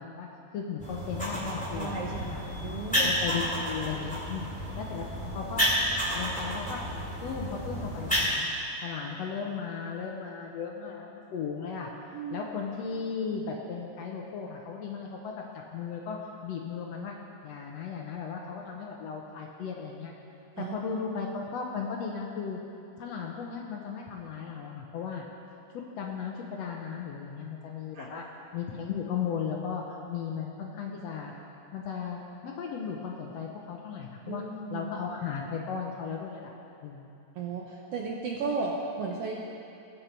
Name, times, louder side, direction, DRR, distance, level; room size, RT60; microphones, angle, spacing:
voice 1, 0.0-2.4 2.9-5.7 6.1-6.8 7.2-8.5 8.8-11.9 12.3-15.4 15.7-17.1 17.4-20.1 20.6-22.6 23.0-25.3 25.7-31.3 31.7-34.4 34.7-36.5 36.8-37.1, left 6 dB, 70° left, 0 dB, 1.7 m, -36 dB
sound 1, 0.8-8.3, equal, 5° left, 2.6 m, -31 dB
voice 2, 1.8-3.1 12.1-12.5 20.6-20.8 27.9-28.1 34.3-34.9 37.4-39.3, right 4 dB, 70° right, -1 dB, 1.5 m, -35 dB
20.0 x 6.8 x 4.4 m, 2.7 s
omnidirectional pair, 3.6 m